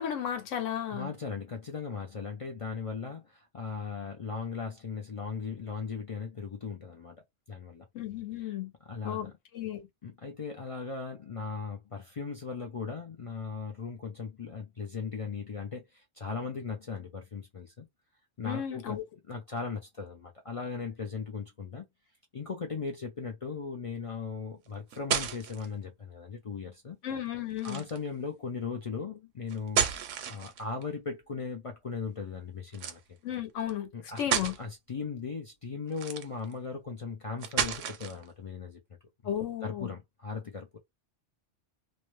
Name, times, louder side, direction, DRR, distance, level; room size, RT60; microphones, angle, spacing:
voice 1, 0.0-1.1 7.9-8.7 9.0-9.9 18.4-19.0 27.0-27.8 33.2-33.9 34.2-34.5 39.2-39.9, left 10 dB, 80° left, 1.1 m, -34 dB
voice 2, 0.9-7.2 7.5-7.8 8.5-8.6 8.9-9.3 10.0-17.8 18.4-19.0 19.3-21.8 22.3-27.0 27.6-29.9 30.3-33.0 33.9-34.2 34.6-38.8 39.6-40.8, left 5 dB, 55° left, 0.3 m, -38 dB
sound 1, 24.7-25.7 27.6-28.1 29.5-30.8 32.7-33.0 33.7-33.8 34.2-34.6 35.9-36.5 37.4-38.2, right 8 dB, 80° right, 0.9 m, -31 dB
2.5 x 2.1 x 3.0 m
omnidirectional pair, 1.3 m